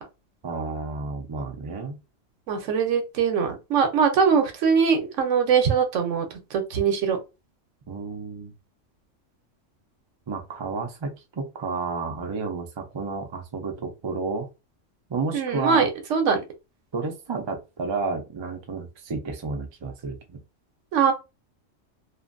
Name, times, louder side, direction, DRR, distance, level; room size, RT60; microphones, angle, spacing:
voice 1, 0.4-2.0 7.9-8.5 10.3-14.5 15.1-15.9 16.9-20.4, right 4 dB, 45° right, 0.3 m, -31 dB
voice 2, 2.5-6.3 6.5-7.2 15.3-16.4 20.9-21.1, right 6 dB, 75° right, 1.0 m, -22 dB
2.5 x 2.4 x 2.5 m
omnidirectional pair, 1.3 m